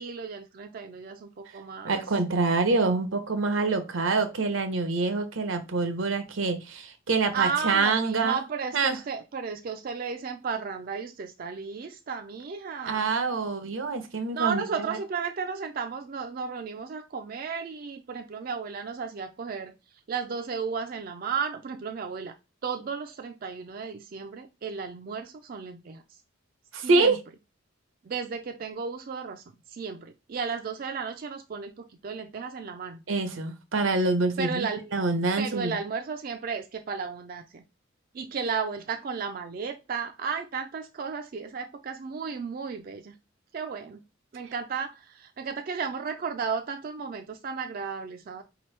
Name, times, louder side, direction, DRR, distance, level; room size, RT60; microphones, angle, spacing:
voice 1, 0.0-2.0 7.3-13.1 14.3-19.7 20.1-22.3 22.6-26.0 26.8-27.1 28.1-29.4 29.7-33.0 34.4-34.8 35.4-37.6 38.1-43.1 43.5-44.0 44.3-48.4, right 5 dB, 45° right, 0.3 m, -34 dB
voice 2, 1.8-8.4 8.7-9.0 12.9-15.0 26.7-27.2 33.1-35.8, right 3 dB, 80° right, 0.8 m, -26 dB
4.5 x 2.9 x 3.2 m
head